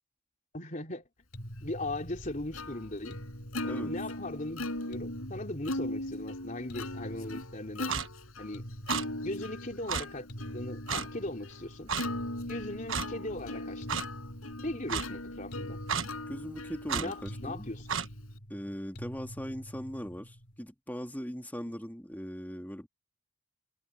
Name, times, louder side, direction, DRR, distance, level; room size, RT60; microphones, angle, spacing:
voice 1, 0.5-1.0 1.6-3.2 3.7-7.9 8.4-8.6 9.2-10.3 10.5-11.9 12.5-13.9 14.6-15.8 16.9-17.9, left 1 dB, 35° left, 3.4 m, -38 dB
sound 1, 1.3-20.6, equal, 55° left, 4.2 m, -46 dB
Plucked string instrument, 1.6-18.4, left 1 dB, 90° left, 7.9 m, -40 dB
Clock, 7.9-8.1 8.9-9.0 9.9-10.0 10.9-11.1 11.9-12.1 12.9-13.1 13.9-14.0 14.9-15.1 15.9-16.1 16.9-17.1 17.9-18.1, right 6 dB, 70° right, 1.3 m, -31 dB
voice 2, 16.3-17.7 18.5-22.9, equal, 10° left, 2.4 m, -40 dB
head